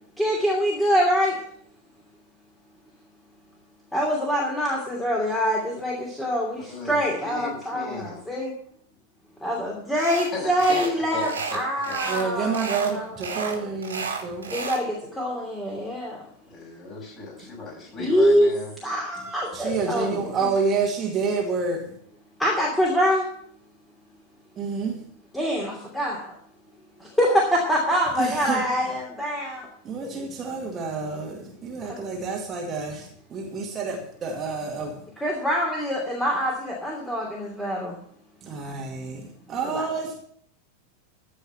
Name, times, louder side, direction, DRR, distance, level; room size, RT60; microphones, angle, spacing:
voice 1, 0.2-1.4 3.9-8.5 9.4-13.1 14.5-16.2 18.0-18.5 18.8-20.5 22.4-23.3 25.3-26.3 27.0-29.7 30.2-30.3 35.2-38.0 39.6-39.8, equal, 5° left, 2.9 m, -25 dB
voice 2, 6.7-8.2 10.3-11.6 11.9-12.0 16.5-18.7, left 3 dB, 25° left, 6.2 m, -36 dB
sound 1, 10.0-10.3 10.6-10.9 11.2-12.3 12.5-12.9 13.2-14.8, right 5 dB, 75° right, 2.6 m, -32 dB
voice 3, 12.0-14.6 19.5-22.0 24.6-25.0 28.2-28.8 29.8-35.1 38.4-40.2, right 4 dB, 25° right, 2.1 m, -29 dB
15.0 x 5.5 x 7.1 m
figure-of-eight pair, 90°, 0 cm